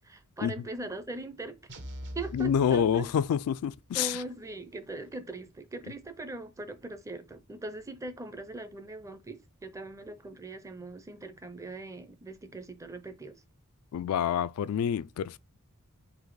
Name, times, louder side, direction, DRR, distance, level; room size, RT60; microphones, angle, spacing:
voice 1, 0.0-1.6 2.1-3.1 3.9-13.4, right 2 dB, 15° right, 0.5 m, -40 dB
sound 1, 1.7-3.6, equal, 55° right, 0.9 m, -44 dB
voice 2, 2.3-4.2 13.9-15.4, left 8 dB, 75° left, 0.3 m, -27 dB
4.1 x 2.8 x 4.6 m
head